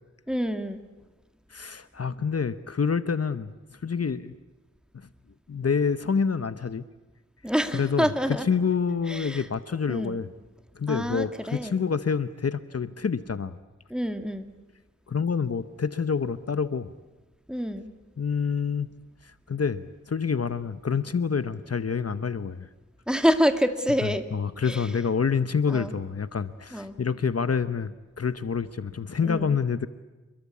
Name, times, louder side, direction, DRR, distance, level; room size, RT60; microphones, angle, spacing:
voice 1, 0.3-0.8 7.4-8.5 9.1-9.4 9.9-10.2 10.9-11.8 13.9-14.5 17.5-17.9 23.1-24.2 24.6-24.9 25.7-25.9 26.7-27.0 29.2-29.5, equal, 5° right, 8 dB, 2.2 m, -27 dB
voice 2, 1.5-4.3 4.9-5.1 5.5-6.8 7.7-10.3 10.8-13.6 15.1-16.9 18.2-18.9 19.2-22.7 24.0-29.9, left 6 dB, 55° left, 13 dB, 0.9 m, -27 dB
28.5 x 22.5 x 8.4 m, 1.2 s
wide cardioid pair, 80°, 30 cm